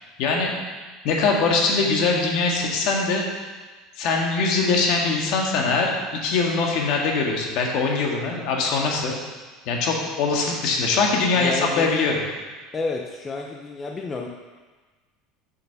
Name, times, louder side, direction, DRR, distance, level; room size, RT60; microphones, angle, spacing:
voice 1, 0.2-0.5 1.0-3.3 4.0-5.9 6.2-9.2 9.7-12.1, left 4 dB, 60° left, 0 dB, 1.8 m, -22 dB
voice 2, 11.3-12.1 12.7-14.3, left 3 dB, 20° left, 1 dB, 0.6 m, -30 dB
6.9 x 6.5 x 5.9 m, 1.3 s
cardioid pair, 145°, 0 cm